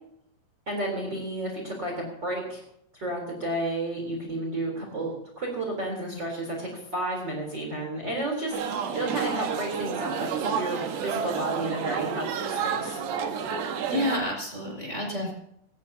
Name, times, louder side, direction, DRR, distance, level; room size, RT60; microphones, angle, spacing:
voice 1, 0.7-2.6 2.9-13.0, right 1 dB, 25° right, 1 dB, 4.1 m, -32 dB
sound 1, 8.5-14.2, right 7 dB, 85° right, 3.9 m, -30 dB
voice 2, 13.9-15.3, left 1 dB, 15° left, -1 dB, 5.6 m, -29 dB
22.5 x 17.5 x 2.9 m, 0.74 s
omnidirectional pair, 4.8 m